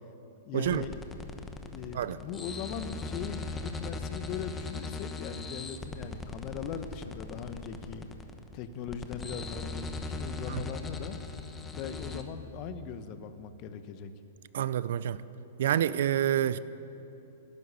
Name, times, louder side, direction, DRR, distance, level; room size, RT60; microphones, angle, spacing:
voice 1, 0.4-1.0 1.7-8.1 8.5-11.2 11.7-14.1, left 7 dB, 40° left, 11 dB, 1.0 m, -40 dB
sound 1, 0.6-12.2, left 3 dB, 15° left, 1.0 m, -39 dB
voice 2, 14.5-15.2 15.6-16.6, right 11 dB, 70° right, 17 dB, 0.5 m, -27 dB
12.5 x 12.0 x 8.4 m, 2.8 s
hypercardioid pair, 130°, 0 cm